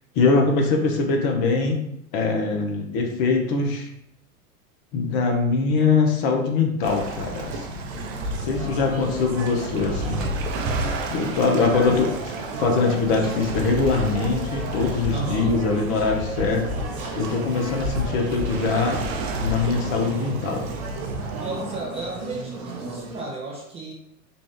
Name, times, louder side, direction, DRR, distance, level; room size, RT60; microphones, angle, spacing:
voice 1, 0.2-1.8 2.1-3.9 4.9-7.8 8.3-10.3 11.1-12.1 12.6-16.7 17.1-19.0 19.4-20.7, left 4 dB, 45° left, 2 dB, 0.9 m, -22 dB
Waves surf, 6.8-21.8, right 1 dB, 45° right, 0.8 m, -31 dB
sound 1, 7.9-23.2, right 3 dB, 65° right, 1.3 m, -36 dB
voice 2, 15.1-15.6 21.4-23.9, right 2 dB, 15° right, -3 dB, 0.5 m, -33 dB
3.9 x 2.4 x 3.6 m, 0.76 s
hypercardioid pair, 100°, 44 cm